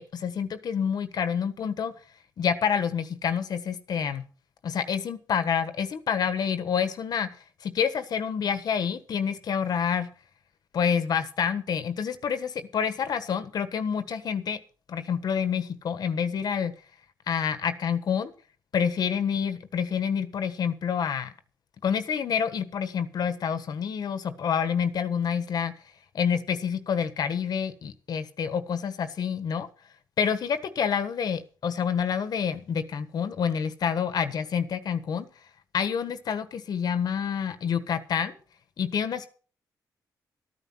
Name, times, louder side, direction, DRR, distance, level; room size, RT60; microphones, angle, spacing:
voice 1, 0.0-1.9 2.4-4.2 4.6-7.3 7.6-10.1 10.7-14.6 14.9-16.7 17.3-18.3 18.7-21.3 21.8-25.7 26.1-29.7 30.2-35.3 35.7-38.3 38.8-39.3, left 7 dB, 65° left, 11 dB, 1.4 m, -28 dB
13.5 x 9.6 x 6.3 m, 0.40 s
cardioid pair, 90°, 7 cm